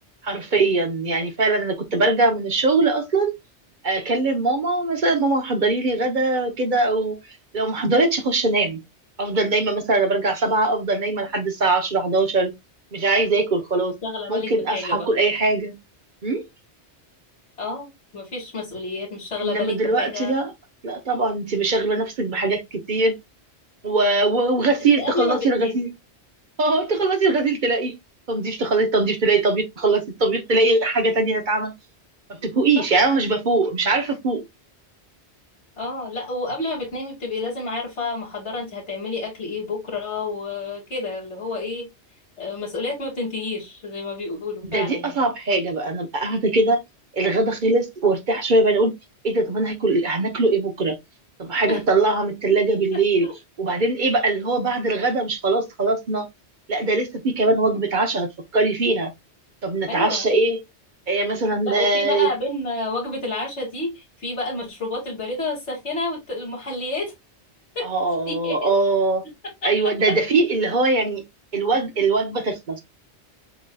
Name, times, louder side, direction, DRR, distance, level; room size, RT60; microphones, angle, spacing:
voice 1, 0.2-3.3 3.8-7.2 7.5-8.8 9.2-12.5 12.9-14.0 14.3-15.8 16.2-16.4 19.4-20.5 20.8-23.1 23.8-25.9 26.6-27.9 28.3-31.7 32.4-34.4 44.7-46.8 47.1-48.9 49.2-51.0 51.4-53.3 53.6-56.3 56.7-59.1 59.6-60.6 61.1-62.3 67.8-69.3 69.6-71.2 71.5-72.8, right 3 dB, 50° right, 0.9 m, -21 dB
voice 2, 14.0-15.1 17.6-20.3 24.9-25.8 32.8-32.9 35.8-41.9 42.4-45.2 51.7-51.8 52.5-52.6 53.2-53.3 59.9-60.2 61.6-67.1 67.8-67.9 68.3-68.7 69.6-69.7, left 3 dB, 80° left, 2.5 m, -29 dB
7.1 x 2.7 x 2.2 m
omnidirectional pair, 1.1 m